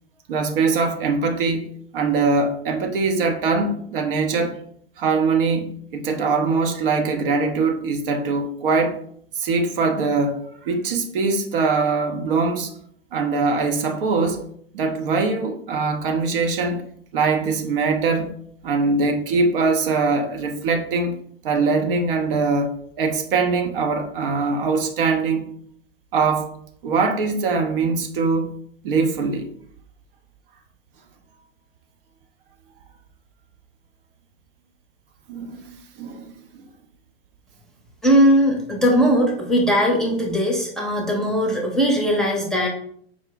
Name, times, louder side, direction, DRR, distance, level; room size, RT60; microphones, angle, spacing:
voice 1, 0.3-1.7 1.9-4.6 5.0-9.0 9.4-12.7 13.1-14.4 14.7-16.8 17.1-18.3 18.6-21.1 21.4-25.5 26.1-26.5 26.8-28.5 28.8-29.5 35.3-36.3 36.6-36.7, right 4 dB, 55° right, 0.7 m, -22 dB
voice 2, 38.0-42.7, equal, ahead, 0.8 m, -19 dB
4.7 x 2.0 x 3.9 m
hypercardioid pair, 105°, 32 cm